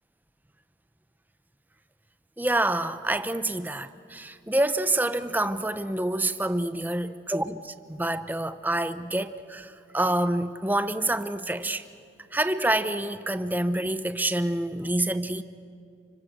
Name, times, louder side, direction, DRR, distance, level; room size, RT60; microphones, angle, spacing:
voice 1, 2.4-11.8 12.3-15.4, right 1 dB, 10° right, 0.7 m, -27 dB
29.0 x 25.0 x 7.9 m
head